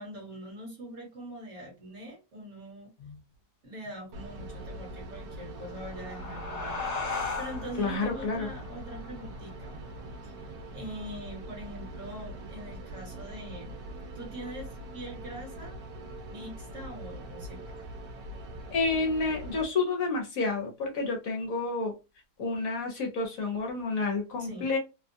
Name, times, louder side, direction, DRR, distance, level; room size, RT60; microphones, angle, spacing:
voice 1, 0.0-2.9 3.6-6.8 7.1-9.8 10.2-10.4 10.7-13.7 14.1-15.7 16.3-17.7 24.4-24.7, equal, 55° right, 0 dB, 1.3 m, -43 dB
sound 1, 4.1-19.6, right 1 dB, 75° right, 1.0 m, -43 dB
sound 2, 5.5-10.7, left 4 dB, 35° left, 0.7 m, -38 dB
voice 2, 7.8-8.5 18.7-21.9 22.4-24.8, left 3 dB, 65° left, 1 dB, 1.1 m, -29 dB
2.9 x 2.2 x 2.6 m, 0.28 s
omnidirectional pair, 1.8 m